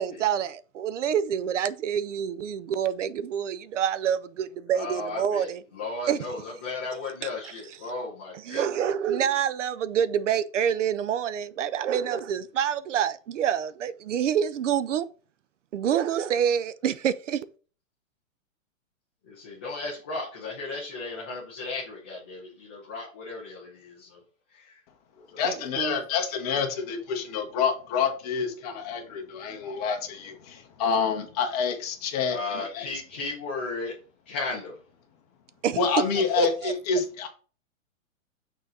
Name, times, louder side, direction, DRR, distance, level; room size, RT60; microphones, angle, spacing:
voice 1, 0.0-5.6 6.1-6.2 7.2-7.9 8.3-15.1 15.7-17.5 25.4-26.0 35.6-35.8 36.4-36.7, right 9 dB, 60° right, 0.6 m, -27 dB
voice 2, 4.7-5.5 5.8-8.6 19.3-24.2 24.5-24.7 25.3-25.4 32.3-33.9 34.3-34.8, left 3 dB, 10° left, 0.4 m, -35 dB
voice 3, 25.4-32.9 35.8-37.3, left 6 dB, 30° left, 1.2 m, -28 dB
6.4 x 3.9 x 4.0 m
hypercardioid pair, 165°, 41 cm